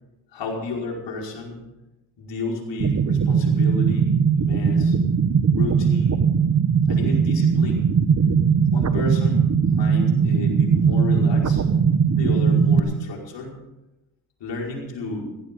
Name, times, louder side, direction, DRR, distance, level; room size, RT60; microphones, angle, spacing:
voice 1, 0.3-1.6 2.2-5.0 5.6-6.3 6.9-7.8 8.2-8.3 8.7-9.4 9.7-11.6 12.1-13.5 14.4-15.3, left 3 dB, 70° left, -1 dB, 5.3 m, -31 dB
sound 1, 2.8-12.8, right 6 dB, 35° right, 1.3 m, -19 dB
17.0 x 16.5 x 3.8 m, 0.98 s
cardioid pair, 75°, 44 cm